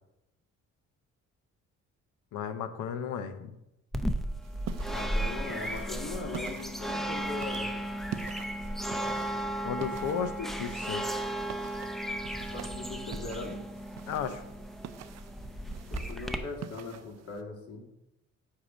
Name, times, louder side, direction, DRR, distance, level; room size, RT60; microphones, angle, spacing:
voice 1, 2.3-3.6 9.6-11.1 14.1-14.5, left 7 dB, 85° left, 9 dB, 0.8 m, -34 dB
sound 1, 3.9-16.4, right 1 dB, ahead, 0.5 m, -35 dB
sound 2, 4.4-17.4, right 10 dB, 60° right, 0.5 m, -47 dB
voice 2, 4.9-7.7 12.5-13.6 15.9-17.8, left 3 dB, 50° left, -1 dB, 2.1 m, -40 dB
8.1 x 2.9 x 6.1 m, 0.88 s
cardioid pair, 90°, 30 cm